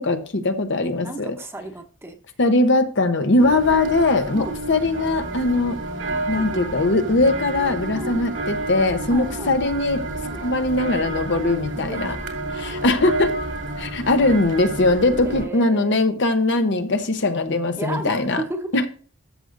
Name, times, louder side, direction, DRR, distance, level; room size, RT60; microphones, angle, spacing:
voice 1, 0.0-1.3 2.4-5.8 6.3-10.0 10.4-12.2 12.5-13.4 13.8-18.4 18.7-18.9, left 2 dB, 60° left, 0.9 m, -20 dB
voice 2, 1.0-2.2 4.3-4.5 6.1-6.6 7.9-8.2 9.1-9.5 10.2-10.4 11.7-12.3 14.2-14.4 15.2-16.0 17.8-18.7, right 2 dB, 10° right, 1.0 m, -34 dB
sound 1, 3.4-15.4, right 2 dB, 70° right, 2.4 m, -30 dB
13.0 x 6.3 x 2.6 m
head